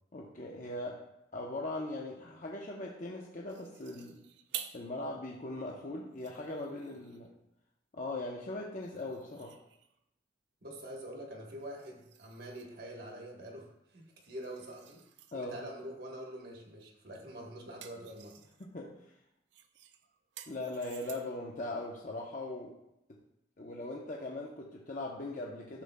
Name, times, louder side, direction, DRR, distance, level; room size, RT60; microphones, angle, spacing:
voice 1, 0.1-1.0 1.3-4.2 4.7-7.3 7.9-9.6 15.3-15.6 18.6-18.9 20.5-22.8 23.1-23.2 23.6-25.8, left 2 dB, 45° left, -2 dB, 0.7 m, -40 dB
sound 1, 3.5-4.9 5.4-5.5 6.0-7.3 8.8-10.0 11.6-12.8 14.0-15.4 16.8-17.1 17.4-18.7 19.5-21.5, right 10 dB, 80° right, 0.5 m, -50 dB
voice 2, 10.6-15.0 15.3-18.4, right 1 dB, 60° right, 0 dB, 1.2 m, -45 dB
11.5 x 6.5 x 2.2 m, 0.85 s
head